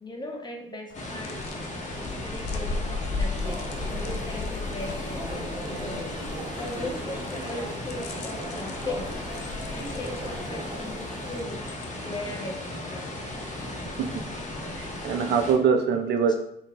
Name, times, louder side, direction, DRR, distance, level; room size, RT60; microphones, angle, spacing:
voice 1, 0.0-1.3 2.0-3.6 3.8-6.0 6.5-9.1 9.7-11.6 12.0-13.0, left 2 dB, 20° left, 1 dB, 0.8 m, -38 dB
sound 1, 0.9-15.0, left 3 dB, 60° left, 0.4 m, -37 dB
sound 2, 0.9-15.5, left 1 dB, 40° left, 1.1 m, -36 dB
sound 3, 3.4-11.4, right 1 dB, 25° right, 0.7 m, -39 dB
voice 2, 14.8-16.4, right 6 dB, 60° right, 6 dB, 0.5 m, -24 dB
3.7 x 2.5 x 2.3 m, 0.74 s
hypercardioid pair, 60°, 19 cm